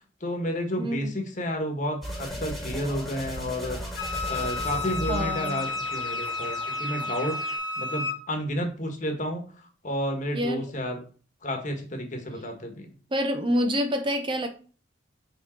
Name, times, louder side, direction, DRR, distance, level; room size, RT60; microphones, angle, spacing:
voice 1, 0.2-3.8 4.2-7.3 7.8-11.0 11.4-12.9, equal, 40° left, 3 dB, 1.4 m, -31 dB
voice 2, 0.8-1.1 5.1-5.6 10.3-10.6 13.1-14.5, equal, 25° right, 5 dB, 0.7 m, -27 dB
sound 1, 2.0-7.6, equal, ahead, 1.5 m, -37 dB
Wind instrument woodwind instrument, 3.9-8.2, left 3 dB, 65° left, 1.4 m, -31 dB
6.2 x 3.7 x 4.4 m, 0.39 s
head